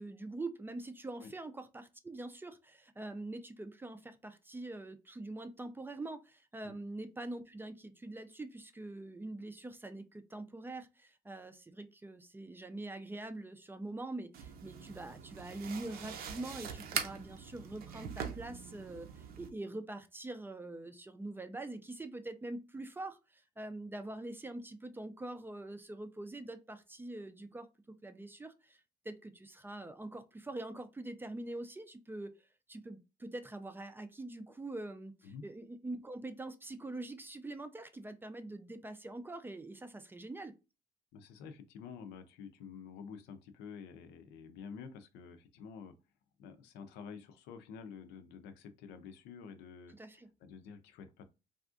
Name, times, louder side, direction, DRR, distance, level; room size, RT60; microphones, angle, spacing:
voice 1, 0.0-27.7 28.0-40.5 50.0-50.3, right 2 dB, 10° right, 0.4 m, -44 dB
sound 1, 14.3-19.5, right 7 dB, 65° right, 0.6 m, -42 dB
voice 2, 41.1-45.9 46.4-51.2, left 6 dB, 85° left, 0.5 m, -49 dB
3.4 x 2.4 x 2.4 m
cardioid pair, 110°, 17 cm